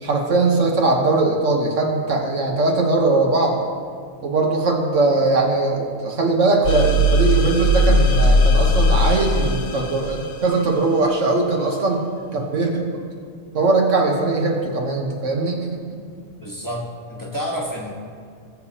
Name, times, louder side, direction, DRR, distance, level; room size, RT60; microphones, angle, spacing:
voice 1, 0.0-3.6 4.2-12.0 12.3-12.9 13.5-15.6, right 3 dB, 70° right, 0 dB, 1.6 m, -20 dB
sound 1, 6.6-10.2, equal, 70° left, 1.1 m, -17 dB
voice 2, 16.4-17.9, equal, 15° left, -3 dB, 1.2 m, -29 dB
19.5 x 7.0 x 2.9 m, 2.1 s
omnidirectional pair, 1.3 m